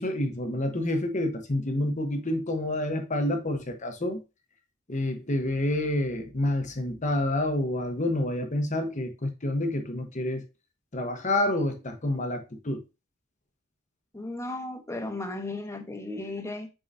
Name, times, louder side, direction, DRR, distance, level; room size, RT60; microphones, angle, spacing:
voice 1, 0.0-4.2 4.9-10.4 10.9-12.8, left 1 dB, 40° left, 1.0 m, -28 dB
voice 2, 14.1-16.7, left 2 dB, 15° left, 1.0 m, -35 dB
7.5 x 4.8 x 2.7 m
head